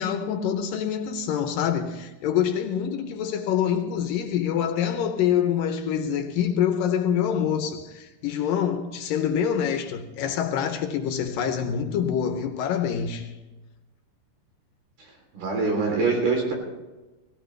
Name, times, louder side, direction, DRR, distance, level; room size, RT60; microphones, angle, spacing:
voice 1, 0.0-13.4, left 8 dB, 75° left, 2.3 m, -26 dB
voice 2, 15.3-16.5, right 4 dB, 80° right, 5.5 m, -24 dB
18.5 x 16.5 x 3.3 m
omnidirectional pair, 4.4 m